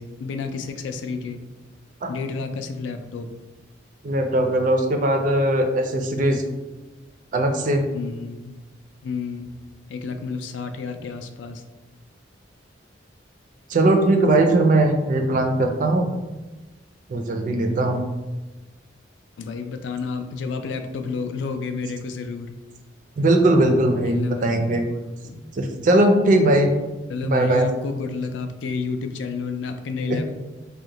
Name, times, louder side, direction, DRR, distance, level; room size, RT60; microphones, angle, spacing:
voice 1, 0.0-1.4 2.1-3.3 7.9-8.5 9.0-9.5 9.9-11.6 19.4-22.6 24.0-25.4 27.1-30.3, left 4 dB, 75° left, 7 dB, 0.3 m, -30 dB
voice 2, 4.0-6.4 7.3-7.8 13.7-16.1 17.1-18.0 23.2-24.8 25.5-26.7 27.2-27.7 30.1-30.2, right 1 dB, 45° right, 5 dB, 0.4 m, -19 dB
2.8 x 2.1 x 3.8 m, 1.1 s
head